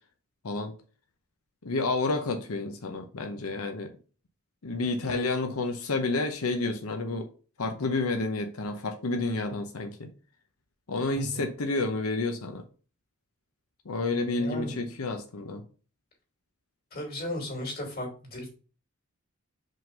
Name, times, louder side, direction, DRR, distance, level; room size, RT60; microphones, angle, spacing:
voice 1, 1.6-3.9 4.6-7.3 7.6-10.1 10.9-12.6 13.9-15.6, left 3 dB, 85° left, 0.8 m, -30 dB
voice 2, 14.3-14.8 16.9-18.5, left 1 dB, 45° left, 2.7 m, -35 dB
5.4 x 3.8 x 5.2 m
head